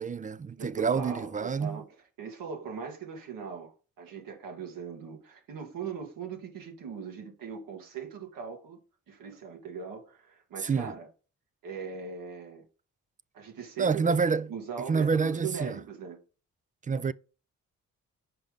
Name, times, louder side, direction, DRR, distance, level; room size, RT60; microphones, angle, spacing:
voice 1, 0.0-1.8 10.6-10.9 13.8-14.5 14.9-15.8 16.9-17.1, right 5 dB, 25° right, 0.4 m, -28 dB
voice 2, 0.6-1.9 2.2-3.7 4.0-8.8 9.1-11.1 11.6-12.6 13.3-14.2 14.5-16.2, right 6 dB, 85° right, 1.8 m, -40 dB
5.8 x 5.1 x 3.5 m
cardioid pair, 60°, 33 cm